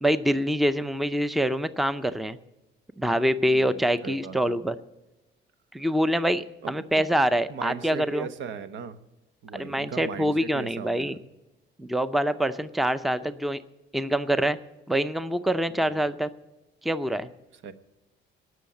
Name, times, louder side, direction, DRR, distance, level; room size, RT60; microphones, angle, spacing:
voice 1, 0.0-2.4 3.0-4.8 5.7-8.3 9.5-11.2 11.8-13.6 13.9-14.6 14.9-16.3 16.8-17.3, equal, ahead, 13 dB, 0.5 m, -25 dB
voice 2, 3.5-4.6 6.6-7.1 7.5-9.0 9.4-11.2 15.7-16.0 17.6-17.7, right 6 dB, 90° right, 10 dB, 1.1 m, -38 dB
18.5 x 6.4 x 7.8 m, 1.0 s
cardioid pair, 125°, 19 cm